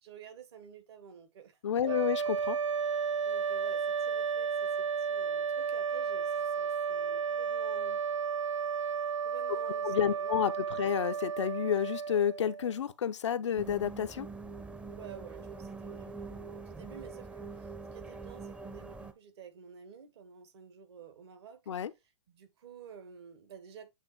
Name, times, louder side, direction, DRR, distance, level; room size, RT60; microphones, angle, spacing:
voice 1, 0.0-1.6 1.9-2.0 3.2-8.0 9.2-11.2 14.9-21.6 22.3-23.9, right 7 dB, 60° right, 1.7 m, -51 dB
voice 2, 1.6-2.6 9.8-14.3 21.7-21.9, left 8 dB, 70° left, 0.6 m, -30 dB
sound 1, 1.8-12.8, right 6 dB, 90° right, 0.5 m, -33 dB
sound 2, 13.6-19.1, right 4 dB, 5° right, 0.7 m, -44 dB
8.1 x 2.9 x 4.1 m
figure-of-eight pair, 115°, 15 cm